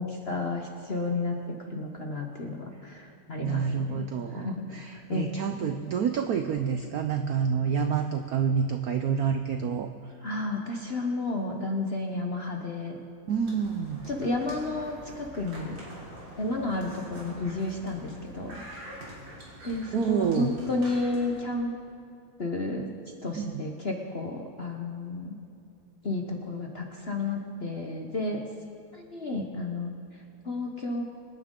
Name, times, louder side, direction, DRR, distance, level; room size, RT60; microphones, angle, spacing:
voice 1, 0.0-4.0 4.3-5.3 5.6-5.7 10.2-13.0 14.1-15.8 16.4-18.6 19.6-21.7 22.4-22.9 23.2-25.4 26.0-28.4 28.9-31.0, left 2 dB, 45° left, 2 dB, 0.8 m, -32 dB
voice 2, 3.4-10.1 13.3-14.1 19.9-20.5 23.4-23.7, right 7 dB, 75° right, 7 dB, 0.8 m, -28 dB
sound 1, 13.3-21.4, equal, 60° right, 4.0 m, -45 dB
25.5 x 10.0 x 3.8 m, 2.6 s
omnidirectional pair, 2.3 m